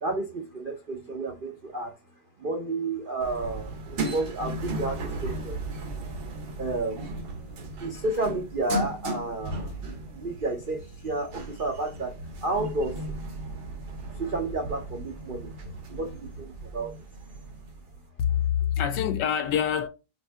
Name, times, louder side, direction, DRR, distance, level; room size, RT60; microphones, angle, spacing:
voice 1, 0.0-1.9 2.4-5.6 6.6-7.0 7.8-9.7 10.1-13.1 14.2-17.0, right 2 dB, 60° right, 0.5 m, -31 dB
sound 1, 3.2-18.0, right 2 dB, 85° right, 2.3 m, -36 dB
voice 2, 18.2-19.9, left 9 dB, 70° left, 1.1 m, -25 dB
7.6 x 2.7 x 2.3 m
omnidirectional pair, 2.1 m